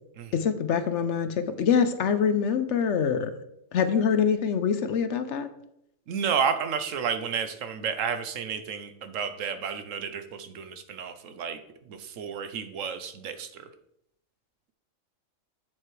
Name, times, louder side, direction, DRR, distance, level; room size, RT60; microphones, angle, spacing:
voice 1, 0.3-3.3 3.7-5.5, left 7 dB, 65° left, 10 dB, 0.9 m, -25 dB
voice 2, 6.1-11.6 11.9-13.7, right 7 dB, 70° right, 9 dB, 1.1 m, -31 dB
7.7 x 7.5 x 3.2 m, 0.77 s
omnidirectional pair, 1.4 m